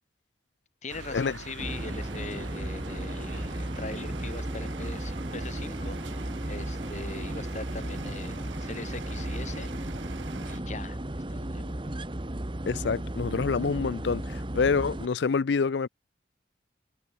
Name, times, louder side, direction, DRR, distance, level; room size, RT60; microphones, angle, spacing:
voice 1, 0.8-9.7 10.4-12.0, left 3 dB, 40° left, 1.3 m, -41 dB
sound 1, 0.9-10.6, right 3 dB, 85° right, 1.6 m, -43 dB
sound 2, 1.6-15.1, right 1 dB, 25° right, 1.2 m, -35 dB
voice 2, 12.7-15.9, left 5 dB, 70° left, 0.5 m, -27 dB
head